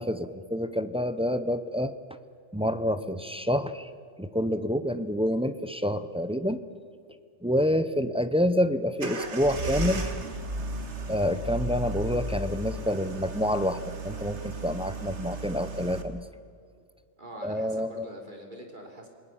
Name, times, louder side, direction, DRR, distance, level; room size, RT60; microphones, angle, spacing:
voice 1, 0.0-1.9 2.5-3.9 4.2-6.6 7.4-10.1 11.1-16.2 17.4-18.1, equal, 5° right, 10 dB, 0.7 m, -28 dB
sound 1, 9.0-16.0, right 2 dB, 60° right, 2.0 m, -34 dB
voice 2, 17.2-19.1, equal, 40° right, 2 dB, 3.6 m, -44 dB
28.0 x 20.0 x 7.4 m, 2.3 s
omnidirectional pair, 1.3 m